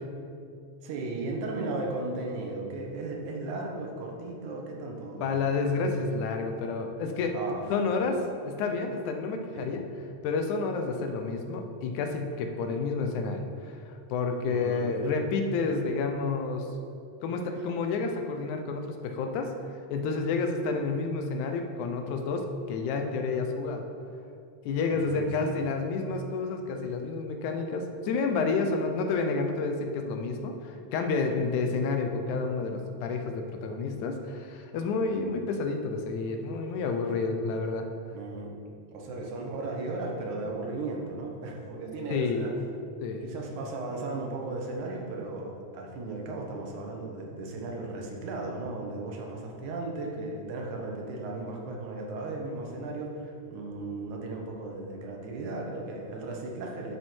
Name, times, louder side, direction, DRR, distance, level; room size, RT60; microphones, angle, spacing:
voice 1, 0.8-5.3 7.3-7.6 9.5-9.7 14.5-15.1 15.7-15.8 24.9-25.6 38.1-38.6 38.9-42.5 43.2-57.0, right 2 dB, 85° right, 0 dB, 2.7 m, -36 dB
voice 2, 5.2-7.4 7.7-8.2 8.4-9.8 10.2-16.7 17.2-23.8 24.7-37.9 39.2-39.3 42.1-42.5 43.0-43.2, left 4 dB, 90° left, 5 dB, 2.3 m, -30 dB
11.0 x 6.9 x 4.5 m, 2.5 s
omnidirectional pair, 3.3 m